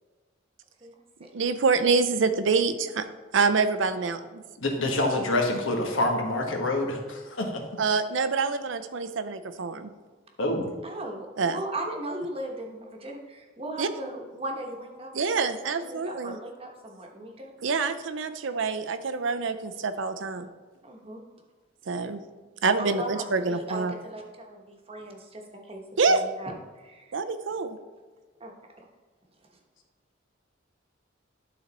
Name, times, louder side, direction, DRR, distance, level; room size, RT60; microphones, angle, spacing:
voice 1, 1.3-3.1 3.3-4.2 7.8-9.9 11.4-11.6 13.8-13.9 15.1-16.4 17.6-20.5 21.9-22.2 22.6-23.9 26.0-26.2 27.1-27.8, right 4 dB, 65° right, 10 dB, 0.5 m, -26 dB
voice 2, 4.6-7.6 10.4-10.7, left 2 dB, 70° left, 2 dB, 1.4 m, -26 dB
voice 3, 10.8-15.1 15.8-17.5 20.8-21.2 22.8-25.4 25.7-25.8 26.1-27.2 28.4-28.5, right 1 dB, 30° right, 1 dB, 1.1 m, -37 dB
11.5 x 4.0 x 4.1 m, 1.3 s
head